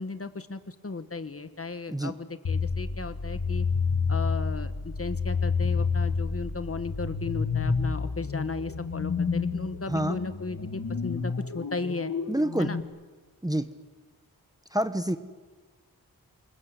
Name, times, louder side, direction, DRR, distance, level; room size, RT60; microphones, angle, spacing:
voice 1, 0.0-3.7 4.1-12.1 12.6-12.8, left 3 dB, 40° left, 11 dB, 1.4 m, -35 dB
sound 1, 2.4-12.8, left 5 dB, 60° left, 2.0 m, -29 dB
voice 2, 9.9-10.2 12.3-12.7 13.4-13.7 14.7-15.2, right 1 dB, 10° right, 10 dB, 1.0 m, -27 dB
28.0 x 21.0 x 8.2 m, 1.4 s
wide cardioid pair, 100°, 36 cm